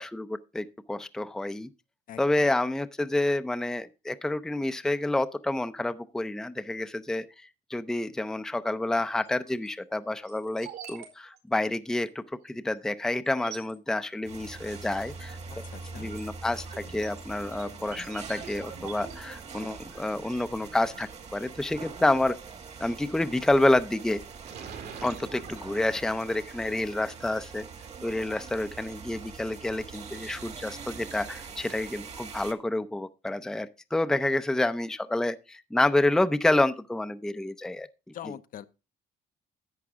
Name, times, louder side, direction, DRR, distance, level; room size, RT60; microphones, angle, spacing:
voice 1, 0.0-1.7 2.2-7.3 7.7-15.4 16.0-22.4 22.8-24.2 25.0-27.7 28.0-38.1, left 2 dB, 5° left, 0.5 m, -28 dB
voice 2, 2.1-2.5 15.5-16.1 38.1-38.7, left 11 dB, 55° left, 0.7 m, -43 dB
sound 1, 9.2-9.7 10.2-11.1 11.3-11.4 11.9-12.0 12.7-12.8 13.3-13.7 15.0-15.3 15.8-21.7 23.3-23.6 24.0-25.6, right 7 dB, 85° right, 4.4 m, -46 dB
sound 2, 14.2-32.5, right 5 dB, 40° right, 1.5 m, -43 dB
11.0 x 8.2 x 3.5 m
cardioid pair, 110°, 17 cm